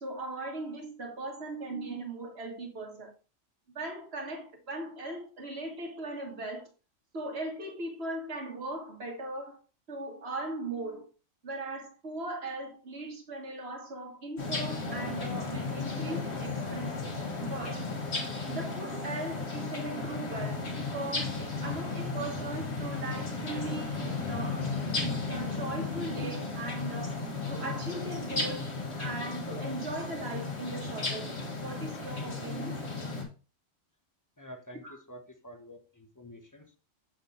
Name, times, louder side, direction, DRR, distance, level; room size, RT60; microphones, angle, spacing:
voice 1, 0.0-3.1 3.8-6.7 7.1-9.6 9.9-11.1 11.4-17.2 17.5-17.9 18.5-24.7 25.0-27.2 27.5-28.7 29.0-32.8 34.8-35.0, right 2 dB, 50° right, 2 dB, 1.9 m, -39 dB
sound 1, 14.4-33.2, left 3 dB, 55° left, 1.9 m, -35 dB
voice 2, 34.4-36.8, equal, 15° left, 5 dB, 0.8 m, -48 dB
7.1 x 4.5 x 3.9 m, 0.33 s
omnidirectional pair, 1.4 m